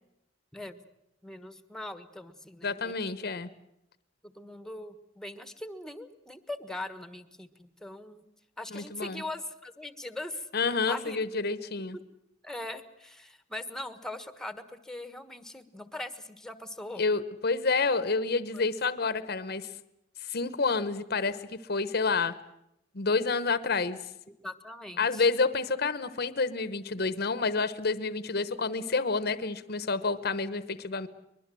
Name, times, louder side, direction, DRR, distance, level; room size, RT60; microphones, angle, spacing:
voice 1, 1.2-3.1 4.2-8.3 8.6-10.5 10.9-11.2 12.4-17.0 18.5-18.7 24.3-25.2, left 1 dB, 5° left, 12 dB, 1.3 m, -41 dB
voice 2, 2.6-3.5 8.7-9.2 10.5-12.0 17.0-19.7 20.2-22.3 22.9-24.0 25.0-31.1, left 4 dB, 55° left, 14 dB, 1.0 m, -29 dB
23.5 x 21.5 x 7.7 m, 0.83 s
head